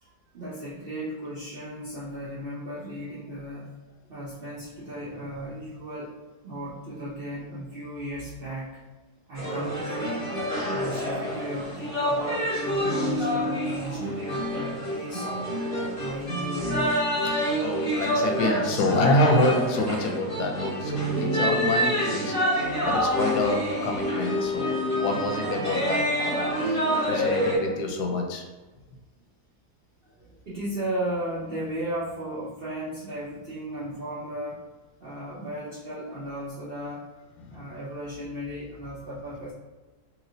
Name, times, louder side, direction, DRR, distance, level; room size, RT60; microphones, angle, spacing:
voice 1, 0.0-3.7 4.1-6.1 6.4-8.7 9.3-10.3 10.7-15.3 15.6-15.7 15.9-17.0 22.2-22.3 22.8-22.9 24.7-24.9 27.5-27.8 30.0-34.6 35.0-37.0 37.5-39.5, right 1 dB, 60° right, -7 dB, 0.6 m, -35 dB
sound 1, 9.4-27.6, equal, 35° left, 1.6 m, -27 dB
voice 2, 17.2-28.4 37.4-37.7, left 2 dB, 90° left, 2 dB, 1.2 m, -27 dB
3.1 x 2.9 x 2.6 m, 1.2 s
omnidirectional pair, 1.7 m